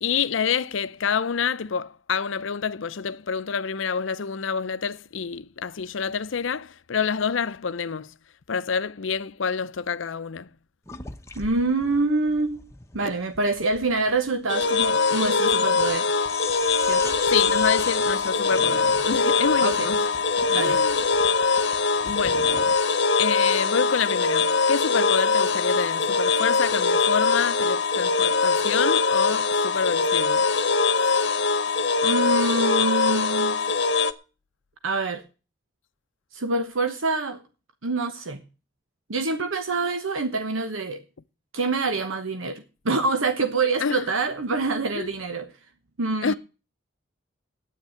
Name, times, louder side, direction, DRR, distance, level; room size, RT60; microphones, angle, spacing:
voice 1, 0.0-8.2 8.5-10.5 13.0-13.2 17.3-20.1 20.5-21.0 22.0-22.6 23.2-30.4 43.8-44.0 45.0-45.1 46.2-46.3, left 6 dB, 75° left, 0.6 m, -27 dB
sound 1, 10.9-22.8, left 4 dB, 15° left, 0.9 m, -40 dB
voice 2, 11.4-12.6 12.9-16.1 16.8-17.2 19.6-19.9 20.5-20.8 30.9-31.3 32.0-33.6 34.8-35.2 36.3-37.4 37.8-38.4 39.1-41.0 41.5-45.5 46.0-46.3, right 3 dB, 90° right, 1.1 m, -26 dB
sound 2, 14.5-34.1, left 4 dB, 60° left, 1.0 m, -22 dB
9.9 x 9.4 x 7.8 m
head